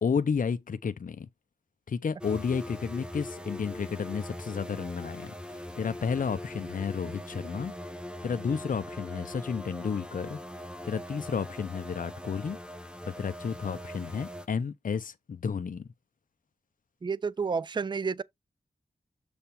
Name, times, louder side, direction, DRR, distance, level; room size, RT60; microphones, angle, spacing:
voice 1, 0.0-1.3 1.9-7.7 8.2-10.4 10.8-12.6 13.1-15.9, left 6 dB, 65° left, 0.6 m, -32 dB
sound 1, 2.2-14.5, equal, 5° right, 1.0 m, -41 dB
voice 2, 17.0-18.2, right 5 dB, 30° right, 0.4 m, -30 dB
7.0 x 3.4 x 4.3 m
wide cardioid pair, 60°, 15 cm